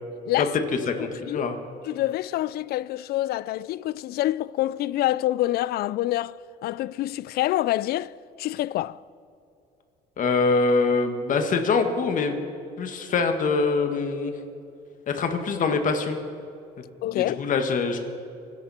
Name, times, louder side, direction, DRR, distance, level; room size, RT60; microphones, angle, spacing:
voice 1, 1.0-1.6 10.2-12.4 12.8-14.3 15.1-16.2 17.1-18.0, left 4 dB, 50° left, 1.8 m, -24 dB
voice 2, 1.8-9.0 17.0-17.4, left 15 dB, 65° left, 0.4 m, -27 dB
25.5 x 11.0 x 4.4 m
cardioid pair, 110°, 17 cm